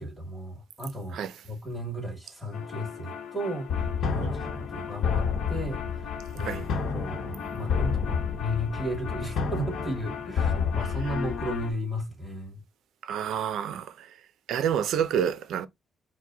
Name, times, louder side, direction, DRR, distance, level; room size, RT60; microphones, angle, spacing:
voice 1, 0.0-1.2 1.4-6.7 6.9-12.6, equal, 5° left, 2.2 m, -34 dB
sound 1, 2.5-11.7, left 6 dB, 65° left, 0.9 m, -30 dB
voice 2, 13.0-14.2 14.5-15.7, right 9 dB, 75° right, 0.5 m, -29 dB
4.5 x 2.2 x 3.8 m
cardioid pair, 90°, 0 cm